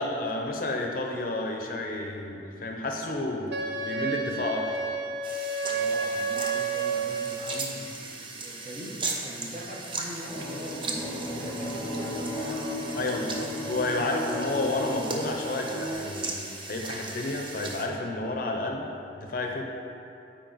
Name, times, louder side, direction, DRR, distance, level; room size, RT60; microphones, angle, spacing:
voice 1, 0.0-3.5 3.8-4.9 12.9-16.3 16.7-19.6, left 2 dB, 50° left, 2 dB, 0.6 m, -31 dB
Wind instrument woodwind instrument, 3.5-7.6, right 4 dB, 65° right, 0.6 m, -30 dB
sound 1, 5.2-17.9, right 3 dB, 30° right, 0.6 m, -38 dB
voice 2, 5.7-13.6 13.9-14.2, equal, 45° right, -2 dB, 1.1 m, -41 dB
sound 2, 10.2-15.9, left 1 dB, 5° right, 1.6 m, -35 dB
9.0 x 4.5 x 4.0 m, 2.7 s
head